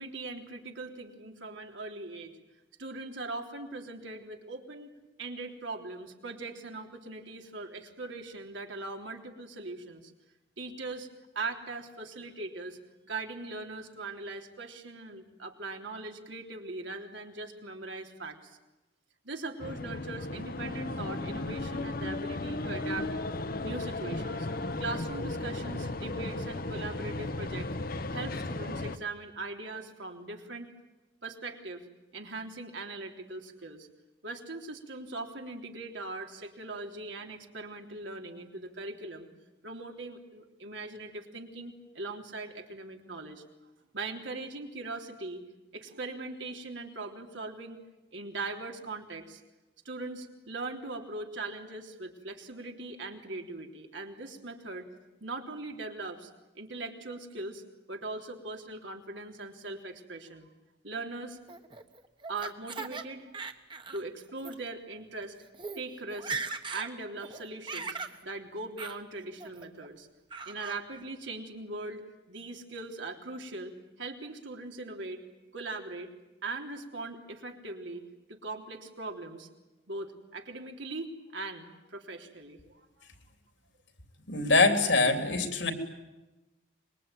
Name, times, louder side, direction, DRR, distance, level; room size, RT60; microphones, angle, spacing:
voice 1, 0.0-2.3 2.8-4.9 5.2-10.1 10.6-11.1 11.4-12.8 13.0-18.6 19.2-23.1 23.6-24.5 24.8-27.8 28.1-30.7 31.2-31.9 32.1-33.9 34.2-39.3 39.6-43.4 43.9-45.4 45.7-47.8 48.1-49.4 49.9-54.9 55.2-56.3 56.6-57.6 57.9-60.5 60.8-61.4 62.3-63.3 63.9-65.4 65.8-66.3 66.7-68.0 68.2-70.1 70.5-75.2 75.5-76.1 76.4-78.0 78.3-79.5 79.9-83.1, right 3 dB, 80° right, 2 dB, 3.6 m, -40 dB
sound 1, 19.6-29.0, left 2 dB, 50° left, 1.1 m, -35 dB
Laughter, 61.5-63.0 63.3-64.0 64.4-64.6 65.2-65.3 65.5-65.8 66.1-66.9 67.2-68.2 68.8-69.0 69.4-69.9 70.3-70.8, right 4 dB, 25° right, 1.5 m, -38 dB
voice 2, 84.3-85.7, left 3 dB, 80° left, 6 dB, 3.8 m, -24 dB
25.5 x 22.5 x 9.2 m, 1.1 s
head